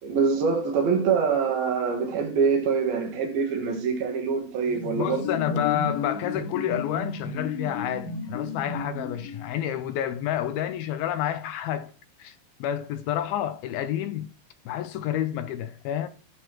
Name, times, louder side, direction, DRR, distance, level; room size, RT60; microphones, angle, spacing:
voice 1, 0.0-5.3 5.5-5.6, right 5 dB, 70° right, 3.5 m, -25 dB
sound 1, 4.7-9.6, left 4 dB, 60° left, 3.4 m, -33 dB
voice 2, 5.0-11.9 12.2-14.3 14.7-16.1, left 11 dB, 75° left, 2.4 m, -29 dB
19.5 x 6.8 x 3.1 m
omnidirectional pair, 4.6 m